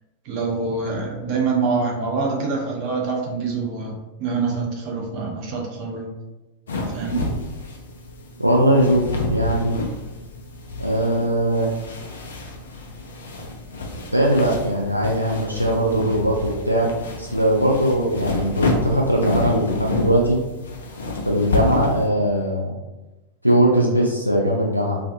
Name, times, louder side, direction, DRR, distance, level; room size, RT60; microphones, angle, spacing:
voice 1, 0.2-6.1 6.9-7.4, right 4 dB, 45° right, -1 dB, 0.6 m, -25 dB
sound 1, 6.7-22.1, left 2 dB, 65° left, 0.4 m, -29 dB
voice 2, 8.4-9.0 9.3-9.8 10.8-11.7 14.1-16.9 17.2-20.4 21.3-22.7 23.4-25.0, right 1 dB, 90° right, -3 dB, 0.3 m, -20 dB
2.3 x 2.3 x 2.6 m, 1.0 s
figure-of-eight pair, 90°, 0 cm